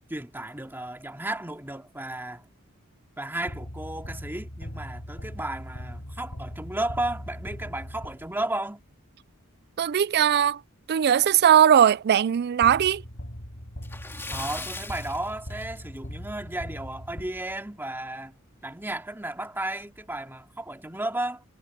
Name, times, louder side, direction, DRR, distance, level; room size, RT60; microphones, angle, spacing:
voice 1, 0.1-2.5 3.2-8.8 14.3-18.4 18.6-21.4, right 1 dB, 10° right, 2.5 m, -33 dB
sound 1, 3.5-8.6 12.6-17.8, equal, 55° left, 5.7 m, -40 dB
voice 2, 9.8-10.6 10.9-13.0, right 9 dB, 50° right, 0.3 m, -19 dB
Splash splatter, 13.8-16.1 16.5-16.6 17.1-17.2 18.6-18.7 19.0-19.1 19.8-20.0, left 2 dB, 10° left, 2.7 m, -39 dB
head